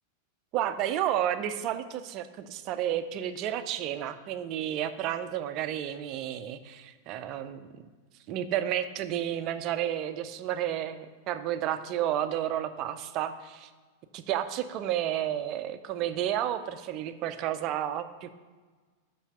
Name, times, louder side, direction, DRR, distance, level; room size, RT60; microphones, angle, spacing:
voice 1, 0.5-7.7 8.3-13.7 14.1-18.3, right 11 dB, 40° right, 11 dB, 0.5 m, -31 dB
5.7 x 5.5 x 6.6 m, 1.4 s
figure-of-eight pair, 90°, 0 cm